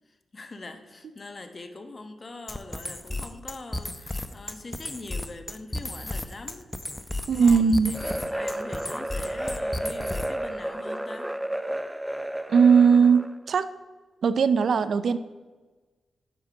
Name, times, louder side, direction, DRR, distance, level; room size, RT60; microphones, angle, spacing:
voice 1, 0.1-6.7 7.2-11.3, left 2 dB, 45° left, 8 dB, 1.2 m, -43 dB
sound 1, 2.5-10.5, left 1 dB, 20° left, 0.8 m, -34 dB
voice 2, 7.3-7.9 12.5-13.7 14.2-15.2, right 6 dB, 70° right, 14 dB, 0.5 m, -19 dB
sound 2, 7.9-13.4, right 1 dB, 10° right, 0.5 m, -32 dB
7.5 x 5.8 x 6.0 m, 1.3 s
supercardioid pair, 40°, 0 cm